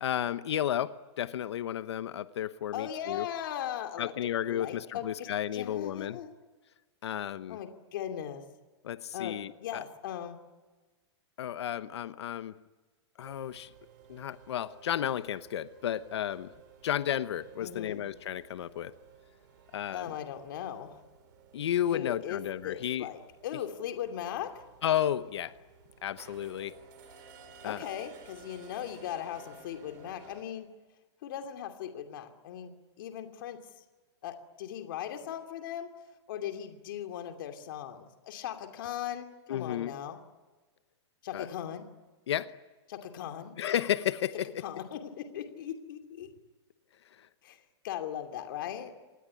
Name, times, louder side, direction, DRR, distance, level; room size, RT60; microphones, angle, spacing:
voice 1, 0.0-3.3 4.0-6.2 7.0-7.6 8.8-9.8 11.4-12.5 13.2-13.7 14.1-16.5 16.8-18.9 19.7-20.1 21.5-23.1 24.8-25.5 26.0-26.7 27.6-27.8 39.5-39.9 41.3-41.5 42.3-42.5 43.6-44.6 47.2-47.3, left 10 dB, 70° left, 14 dB, 1.0 m, -32 dB
voice 2, 2.7-4.1 4.4-6.3 7.5-8.5 9.1-10.4 17.6-18.0 19.9-21.0 21.9-24.6 27.6-30.7 31.2-33.6 34.2-35.9 36.3-40.2 41.2-41.9 42.9-43.6 44.6-46.3 47.4-48.9, left 10 dB, 50° left, 6 dB, 2.7 m, -38 dB
sound 1, 13.2-30.4, right 6 dB, 45° right, 4.8 m, -56 dB
26.5 x 20.0 x 9.9 m, 1.3 s
supercardioid pair, 170°, 15 cm